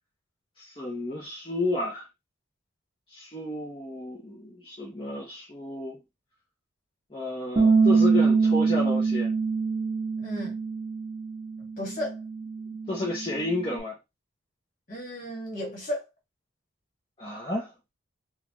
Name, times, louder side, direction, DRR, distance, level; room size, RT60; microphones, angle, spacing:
voice 1, 0.6-2.0 3.1-6.0 7.1-9.3 12.9-13.9 17.2-17.7, left 2 dB, 25° left, 0.9 m, -32 dB
Bass guitar, 7.6-13.8, right 4 dB, 20° right, 1.5 m, -25 dB
voice 2, 10.2-10.6 11.8-12.2 14.9-16.0, left 1 dB, 40° left, 1.9 m, -34 dB
3.8 x 2.4 x 3.0 m
head